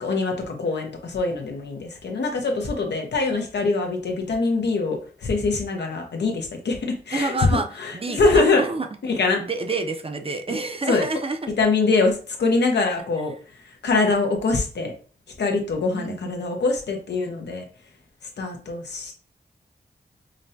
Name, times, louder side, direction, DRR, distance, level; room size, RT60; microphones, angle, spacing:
voice 1, 0.0-8.6 9.0-9.4 10.9-11.1 11.6-13.3 13.6-14.9 15.4-17.6 18.4-19.1, left 3 dB, 85° left, 3 dB, 0.9 m, -23 dB
voice 2, 7.1-7.7 7.9-8.9 9.4-11.5 15.9-16.3, right 3 dB, 35° right, 6 dB, 0.6 m, -28 dB
5.2 x 2.1 x 2.7 m, 0.39 s
cardioid pair, 70°, 17 cm